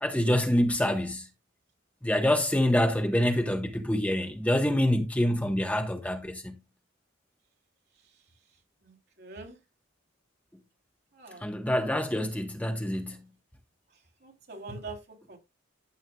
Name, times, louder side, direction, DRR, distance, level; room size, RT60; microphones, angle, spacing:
voice 1, 0.0-1.3 2.0-6.6 11.4-13.2, left 1 dB, 5° left, 0.8 m, -26 dB
voice 2, 9.2-9.5 11.2-11.4 14.2-15.0 15.3-15.4, right 3 dB, 55° right, 3.3 m, -42 dB
13.5 x 7.9 x 2.3 m
head